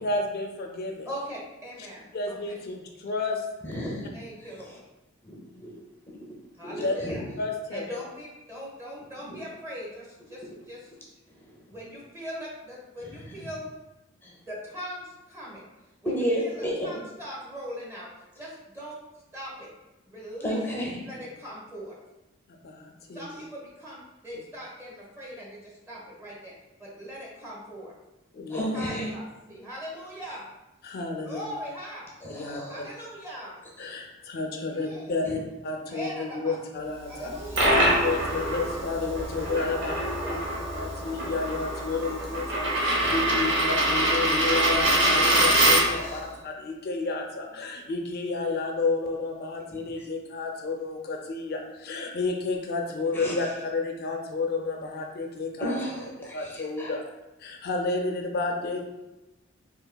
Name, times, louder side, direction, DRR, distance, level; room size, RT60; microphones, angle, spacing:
voice 1, 0.0-1.1 2.1-3.5 6.8-6.9 7.4-8.0 22.6-23.2 28.3-28.8 30.8-31.4 32.3-32.6 33.8-37.3 38.0-40.0 40.3-40.4 40.7-55.7 56.3-57.0 57.4-58.8, left 3 dB, 50° left, 2 dB, 0.4 m, -31 dB
voice 2, 1.0-2.6 4.1-4.8 6.5-7.2 7.7-10.4 10.7-10.8 11.7-13.7 14.2-15.7 16.0-16.5 16.8-18.1 18.4-19.0 19.3-19.7 20.1-20.6 21.0-21.9 23.1-26.5 26.8-27.9 28.7-30.4 31.2-32.0 32.7-33.5 34.7-35.3 35.9-36.6 37.1-37.8 39.7-40.4 43.8-44.0 46.5-46.7 47.6-47.7, equal, 15° right, -5 dB, 1.0 m, -40 dB
voice 3, 3.6-4.8 5.2-5.8 6.6-7.2 9.2-9.4 11.4-11.5 13.0-13.5 14.2-14.3 16.0-16.9 20.4-21.0 28.5-29.1 32.2-32.9 33.8-34.0 35.3-35.4 42.8-43.1 45.9-46.3 49.7-50.1 53.1-53.5 55.6-56.9, equal, 10° left, -4 dB, 0.6 m, -33 dB
Coin (dropping), 37.2-46.1, right 1 dB, 65° right, 0.7 m, -24 dB
3.8 x 2.8 x 2.2 m, 0.99 s
head